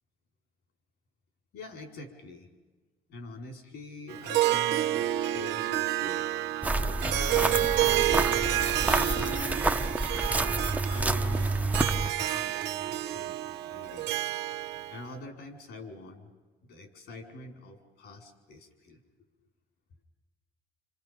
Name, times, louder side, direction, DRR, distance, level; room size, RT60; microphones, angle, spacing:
voice 1, 1.5-2.5 3.1-8.2 8.8-9.9 10.9-11.6 11.9-14.1 14.9-16.3 16.6-19.0, left 2 dB, 75° left, 4 dB, 5.0 m, -45 dB
Harp, 4.1-15.0, right 14 dB, 90° right, 0.9 m, -29 dB
sound 1, 6.6-12.1, right 2 dB, 10° right, 0.9 m, -28 dB
28.5 x 27.5 x 5.3 m, 1.3 s
cardioid pair, 110°, 17 cm